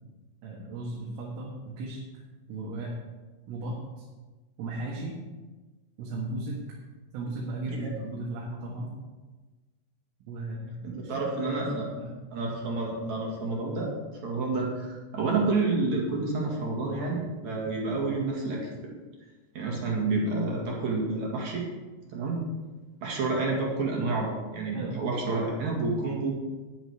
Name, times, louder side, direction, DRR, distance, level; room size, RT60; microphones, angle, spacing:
voice 1, 0.4-2.2 2.5-2.9 3.5-4.1 4.6-5.2 6.0-6.6 7.1-8.9 10.3-11.7 12.0-12.1 24.7-25.3, right 2 dB, 80° right, -4 dB, 4.1 m, -36 dB
voice 2, 10.8-11.9 12.3-13.9 14.2-18.7 19.5-21.7 22.1-22.4 23.0-26.3, right 3 dB, 50° right, -2 dB, 2.5 m, -29 dB
10.5 x 10.5 x 4.7 m, 1.3 s
omnidirectional pair, 5.7 m